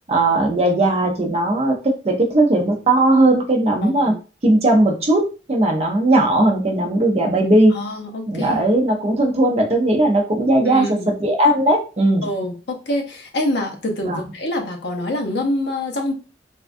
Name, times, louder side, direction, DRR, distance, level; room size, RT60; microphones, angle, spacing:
voice 1, 0.1-4.1 4.4-7.7 8.3-12.3 14.0-14.2, right 1 dB, 35° right, 0.5 m, -17 dB
voice 2, 3.8-4.2 7.7-8.6 10.6-11.1 12.2-16.1, left 1 dB, 65° left, 0.6 m, -25 dB
3.4 x 2.2 x 2.5 m
head